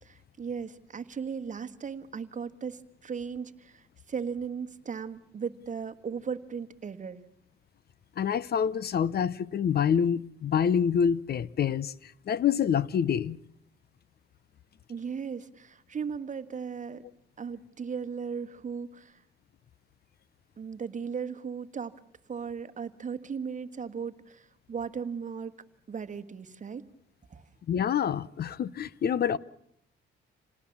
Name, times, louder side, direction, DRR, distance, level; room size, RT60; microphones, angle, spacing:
voice 1, 0.0-7.2 14.9-17.0 17.4-19.2 20.6-21.9 22.3-25.5 25.9-26.8 27.3-27.4, right 6 dB, 40° right, 1.4 m, -37 dB
voice 2, 8.2-13.4 27.7-29.4, left 8 dB, 50° left, 0.8 m, -27 dB
27.0 x 18.5 x 7.2 m
cardioid pair, 90°, 20 cm